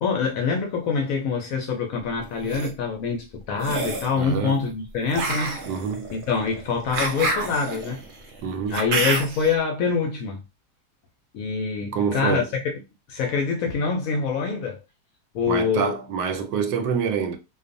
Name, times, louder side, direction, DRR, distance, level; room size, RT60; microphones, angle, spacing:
voice 1, 0.0-5.6 6.1-8.0 8.7-10.4 11.3-12.7 13.1-14.8 15.3-15.9, left 5 dB, 70° left, 0.8 m, -25 dB
sound 1, 2.2-2.7 3.6-4.1 5.1-9.5, right 3 dB, 65° right, 0.7 m, -28 dB
voice 2, 4.2-4.6 5.7-6.1 8.4-8.8 11.9-12.5 15.5-17.4, right 6 dB, 80° right, 1.2 m, -26 dB
2.5 x 2.3 x 2.5 m
omnidirectional pair, 1.8 m